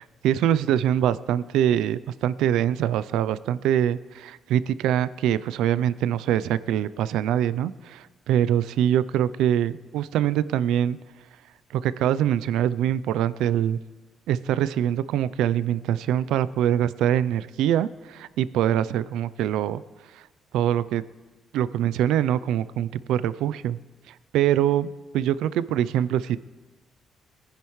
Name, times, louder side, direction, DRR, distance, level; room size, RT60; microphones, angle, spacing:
voice 1, 0.0-11.0 11.7-13.8 14.3-19.8 20.1-20.2 20.5-21.0 21.5-23.8 24.3-26.4, right 10 dB, 90° right, 17 dB, 0.4 m, -24 dB
20.5 x 10.0 x 3.1 m, 1.2 s
cardioid pair, 90°, 0 cm